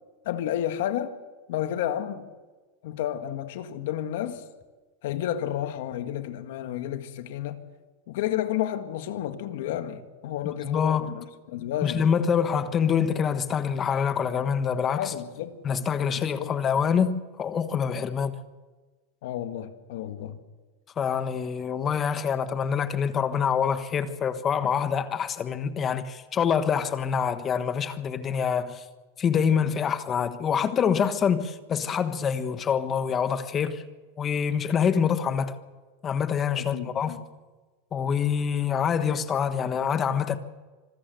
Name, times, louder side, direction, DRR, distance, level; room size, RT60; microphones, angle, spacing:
voice 1, 0.3-1.2 1.5-2.3 2.8-4.4 5.0-7.6 8.1-12.1 15.0-15.6 16.1-16.5 19.2-20.4 36.7-37.2, left 11 dB, 75° left, 1.8 m, -31 dB
voice 2, 10.4-11.1 11.8-15.1 15.6-18.4 21.0-28.8 29.2-33.8 34.2-35.5 36.0-37.2 37.9-40.4, left 7 dB, 25° left, 1.3 m, -26 dB
25.5 x 14.0 x 7.8 m
supercardioid pair, 135°, 0 cm